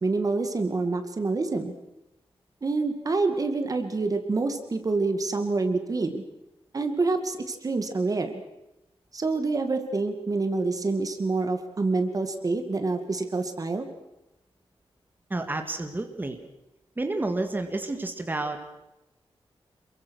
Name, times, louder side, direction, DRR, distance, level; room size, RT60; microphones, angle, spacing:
voice 1, 0.0-1.7 2.6-6.2 6.7-8.3 9.1-13.9, right 3 dB, 35° right, 7 dB, 2.1 m, -27 dB
voice 2, 15.3-16.4 17.0-18.7, right 2 dB, 20° right, 6 dB, 2.1 m, -30 dB
27.5 x 22.5 x 6.4 m, 0.93 s
wide cardioid pair, 150°, 10 cm